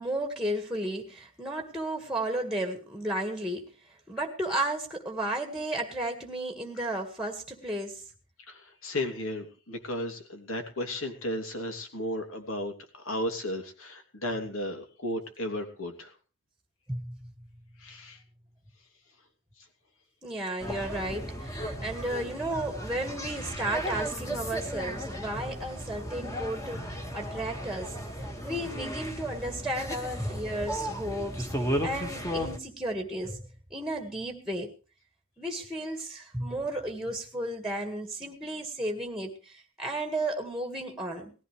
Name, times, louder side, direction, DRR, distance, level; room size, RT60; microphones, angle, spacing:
voice 1, 0.0-3.7 4.1-8.0 16.9-17.2 20.2-27.9 28.2-33.4 33.7-34.7 35.4-41.3, right 1 dB, ahead, 4 dB, 1.9 m, -33 dB
voice 2, 8.5-16.2 17.8-18.2, left 1 dB, 65° left, 5 dB, 3.0 m, -34 dB
sound 1, 20.6-32.6, equal, 15° left, 1.9 m, -35 dB
19.0 x 15.0 x 3.4 m, 0.35 s
head